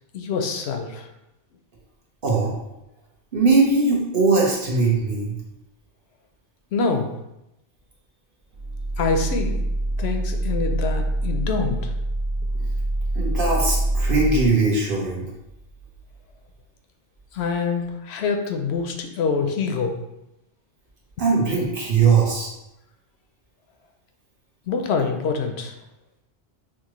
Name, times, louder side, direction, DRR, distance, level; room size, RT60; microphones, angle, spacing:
voice 1, 0.1-1.1 6.7-7.1 9.0-9.6 10.0-11.9 17.3-20.0 24.7-25.7, left 4 dB, 75° left, 4 dB, 0.8 m, -25 dB
voice 2, 2.2-2.5 3.3-5.4 13.1-15.2 21.2-22.5, right 4 dB, 55° right, -3 dB, 1.2 m, -20 dB
sound 1, 8.5-14.5, right 1 dB, 10° left, 0.7 m, -25 dB
5.9 x 2.4 x 3.0 m, 0.89 s
omnidirectional pair, 1.1 m